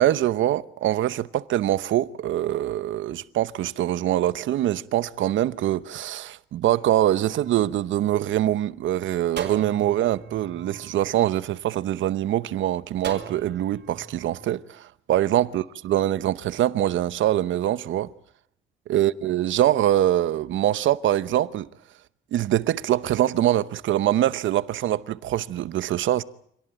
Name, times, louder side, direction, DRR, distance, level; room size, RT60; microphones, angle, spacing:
voice 1, 0.0-18.1 18.9-21.7 22.3-26.2, right 12 dB, 75° right, 0.9 m, -24 dB
sound 1, 7.2-8.7 9.4-11.9 13.0-14.4, right 8 dB, 60° right, 3.8 m, -39 dB
26.5 x 18.0 x 9.0 m
cardioid pair, 90°, 20 cm